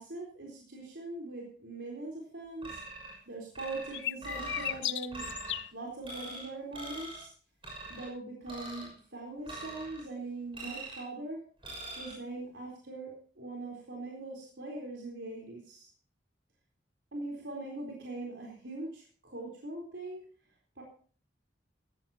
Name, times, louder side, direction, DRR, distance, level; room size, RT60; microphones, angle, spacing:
voice 1, 0.0-2.8 3.3-5.2 5.7-7.3 7.9-11.4 12.0-15.9 17.1-20.3 20.8-20.9, right 2 dB, 75° right, -2 dB, 3.9 m, -41 dB
sound 1, 2.6-3.2 3.5-4.8 5.1-5.6 6.0-6.5 6.7-7.2 7.6-8.1 8.5-8.9 9.5-10.0 10.5-11.1 11.6-12.1, right 2 dB, 30° right, 6.1 m, -43 dB
sound 2, 3.9-5.7, left 12 dB, 75° left, 0.5 m, -35 dB
16.0 x 14.5 x 2.9 m, 0.43 s
head